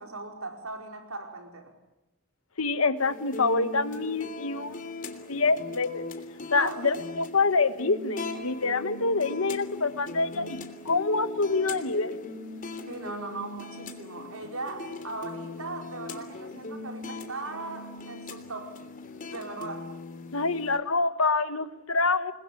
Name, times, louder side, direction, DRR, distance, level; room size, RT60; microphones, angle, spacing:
voice 1, 0.0-1.7 6.5-7.0 12.9-18.8 19.3-19.9, right 3 dB, 85° right, 5.1 m, -38 dB
voice 2, 2.6-4.8 5.3-6.0 6.5-10.6 10.8-12.2 20.3-22.3, left 3 dB, 75° left, 1.5 m, -26 dB
sound 1, 3.0-20.8, left 3 dB, 40° left, 3.2 m, -40 dB
29.0 x 21.5 x 8.6 m
head